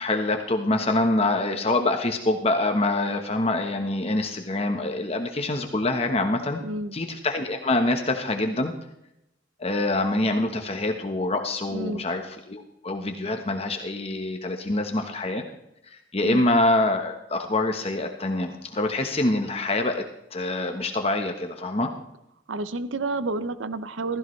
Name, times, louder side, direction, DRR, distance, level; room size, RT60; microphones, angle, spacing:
voice 1, 0.0-6.6 6.9-8.7 9.6-15.4 15.9-20.0 20.3-21.9, left 2 dB, 30° left, 5 dB, 1.1 m, -25 dB
voice 2, 6.6-7.0 11.7-12.1 16.2-16.5 22.5-24.2, right 2 dB, 85° right, 13 dB, 0.7 m, -30 dB
15.5 x 15.0 x 3.2 m, 0.81 s
head